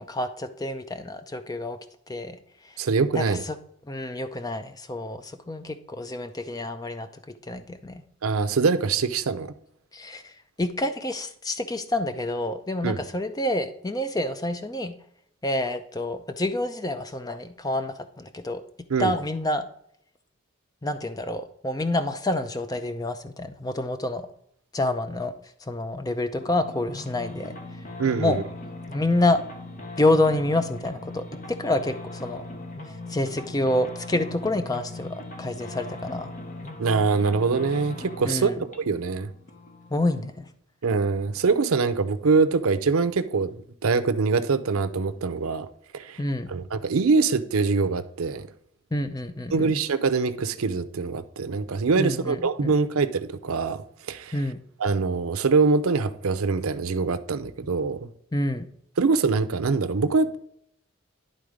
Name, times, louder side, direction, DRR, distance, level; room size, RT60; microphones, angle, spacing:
voice 1, 0.0-1.8 2.1-2.4 2.7-2.8 3.1-3.6 3.9-7.1 7.5-8.0 9.9-10.3 10.6-14.9 15.4-18.6 19.0-19.7 20.8-24.2 24.7-25.3 25.6-27.5 28.2-28.4 28.9-29.4 30.0-32.5 33.1-36.3 38.2-38.6 39.9-40.4 46.2-46.5 48.9-49.8 52.0-52.7 54.3-54.6 58.3-58.7, left 1 dB, 15° left, 0.5 m, -28 dB
voice 2, 2.8-3.4 8.2-9.5 12.8-13.0 18.9-19.1 28.0-28.4 36.8-39.3 40.8-45.7 45.9-46.2 46.5-48.5 49.5-54.4 54.8-58.1 59.0-60.4, right 4 dB, 85° right, 0.6 m, -24 dB
sound 1, 26.4-40.5, left 2 dB, 35° left, 1.0 m, -40 dB
11.0 x 3.9 x 5.0 m
head